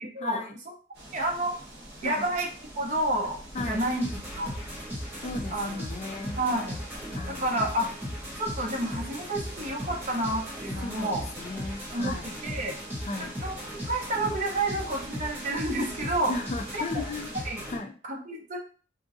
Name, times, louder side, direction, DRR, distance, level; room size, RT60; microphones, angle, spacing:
voice 1, 0.2-0.6 2.0-2.3 3.5-3.8 5.2-6.4 7.1-7.6 10.8-12.3 13.0-13.4 16.3-17.3 17.7-18.0, left 3 dB, 35° left, 7 dB, 0.3 m, -36 dB
sound 1, 0.9-17.4, right 1 dB, 60° right, 1.4 m, -46 dB
voice 2, 1.1-1.5 2.0-2.5 2.8-3.4 3.7-4.0 4.3-4.5 5.5-5.9 6.4-6.8 7.3-7.9 8.4-11.3 11.9-12.2 12.4-12.8 13.2-13.5 13.9-16.3 16.7-17.0 17.4-17.6 18.0-18.6, right 1 dB, 40° right, 1 dB, 0.8 m, -29 dB
sound 2, 3.6-17.8, equal, 10° right, 1.0 m, -37 dB
4.4 x 2.6 x 2.6 m, 0.39 s
head